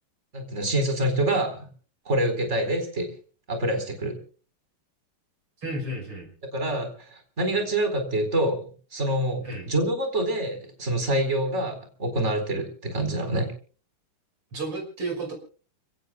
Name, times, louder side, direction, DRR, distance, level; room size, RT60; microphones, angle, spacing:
voice 1, 0.3-1.7 2.1-3.1 3.5-4.1 6.5-8.6 8.9-13.5, right 1 dB, 30° right, 6 dB, 4.6 m, -26 dB
voice 2, 5.6-6.3 9.4-9.7 14.5-15.3, right 2 dB, 85° right, 3 dB, 6.6 m, -32 dB
29.5 x 18.0 x 2.3 m, 0.39 s
omnidirectional pair, 2.3 m